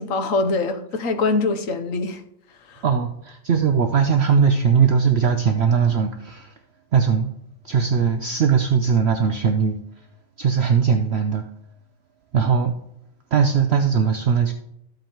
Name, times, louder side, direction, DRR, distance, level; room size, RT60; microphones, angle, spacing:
voice 1, 0.0-2.2 2.7-2.8, left 3 dB, 70° left, 1.3 m, -23 dB
voice 2, 2.8-6.5 6.9-7.3 7.6-9.8 10.4-11.4 12.3-12.7 13.3-14.5, right 6 dB, 60° right, 0.8 m, -19 dB
14.0 x 7.8 x 3.0 m
omnidirectional pair, 1.5 m